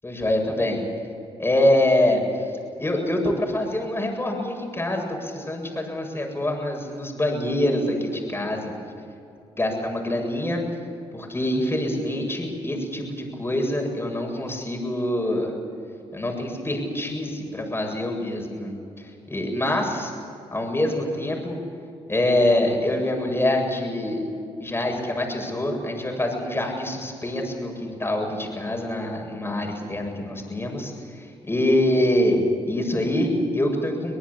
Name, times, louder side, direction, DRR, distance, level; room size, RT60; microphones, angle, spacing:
voice 1, 0.0-0.8 1.4-2.2 2.8-8.7 9.6-10.6 11.1-15.5 16.1-18.8 19.3-20.1 20.5-21.6 22.1-24.2 24.6-32.4 32.6-34.2, left 1 dB, 20° left, 2 dB, 7.7 m, -25 dB
25.0 x 19.0 x 8.7 m, 2.6 s
supercardioid pair, 60°, 12 cm